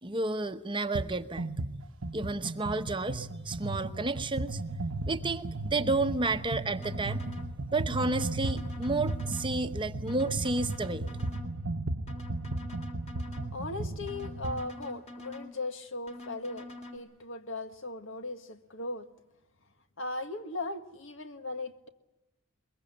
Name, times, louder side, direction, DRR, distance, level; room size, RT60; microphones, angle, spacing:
voice 1, 0.0-1.5 2.1-4.6 5.1-7.2 7.7-11.1, right 3 dB, 25° right, 1.0 m, -31 dB
sound 1, 0.9-1.1 1.4-14.7, right 2 dB, 70° right, 1.0 m, -36 dB
sound 2, 6.8-7.5 8.1-9.5 10.1-11.5 12.1-13.5 14.1-15.5 16.1-17.0, left 1 dB, 30° left, 3.4 m, -45 dB
voice 2, 13.5-19.1 20.0-21.9, left 2 dB, 65° left, 1.8 m, -38 dB
22.5 x 22.5 x 8.9 m
head